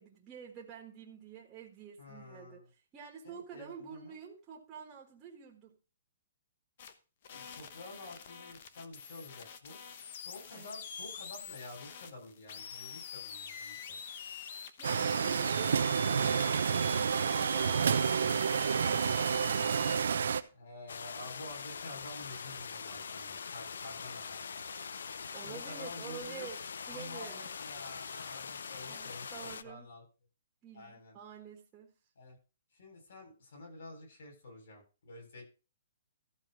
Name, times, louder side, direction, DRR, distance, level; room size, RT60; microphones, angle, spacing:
voice 1, 0.0-2.6 2.9-5.8 10.5-10.7 25.3-27.5 28.9-29.9 30.6-31.9, right 7 dB, 15° right, -2 dB, 1.6 m, -49 dB
voice 2, 2.0-2.6 3.2-4.2 7.3-9.8 10.2-14.0 20.5-24.4 25.4-26.5 26.9-30.0 30.7-31.2 32.2-32.4 32.7-35.5, left 2 dB, 55° left, 0 dB, 7.9 m, -49 dB
sound 1, 6.8-6.9 7.2-20.0, left 7 dB, 40° left, 1.1 m, -45 dB
sound 2, 14.8-20.4, right 6 dB, 75° right, 0.8 m, -29 dB
sound 3, 20.9-29.6, left 6 dB, 85° left, 0.7 m, -43 dB
14.0 x 4.9 x 6.4 m, 0.32 s
hypercardioid pair, 175°, 0 cm